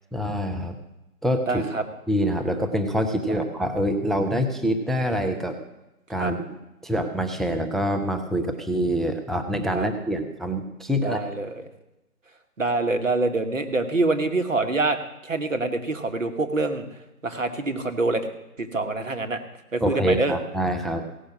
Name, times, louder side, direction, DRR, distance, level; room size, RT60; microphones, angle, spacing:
voice 1, 0.1-0.8 1.2-1.7 2.1-5.6 6.1-6.4 6.8-11.2 19.8-21.1, equal, ahead, 5 dB, 0.5 m, -25 dB
voice 2, 1.5-1.8 6.1-6.3 9.7-9.9 11.0-11.5 12.6-15.0 15.2-16.8 17.2-18.3 18.6-19.4 19.7-20.3, right 3 dB, 55° right, 6 dB, 1.4 m, -25 dB
17.0 x 6.3 x 6.0 m, 0.95 s
hypercardioid pair, 180°, 46 cm